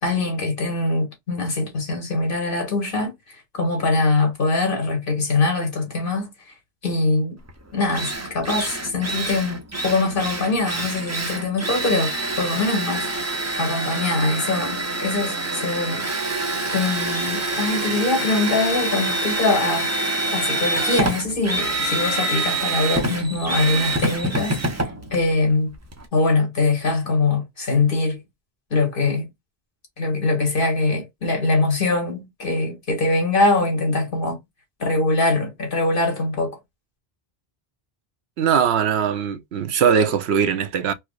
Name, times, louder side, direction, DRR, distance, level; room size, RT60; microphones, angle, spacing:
voice 1, 0.0-6.3 6.8-7.4 7.7-13.1 13.6-16.0 16.7-19.9 20.3-24.8 25.1-25.7 26.1-28.2 28.7-29.3 30.0-34.4 34.8-36.6, left 3 dB, 55° left, 1.5 m, -23 dB
Drill, 7.5-7.6 7.9-26.1, right 2 dB, 20° right, 0.5 m, -26 dB
voice 2, 38.4-40.9, right 7 dB, 85° right, 0.9 m, -20 dB
4.5 x 2.0 x 2.3 m
omnidirectional pair, 1.1 m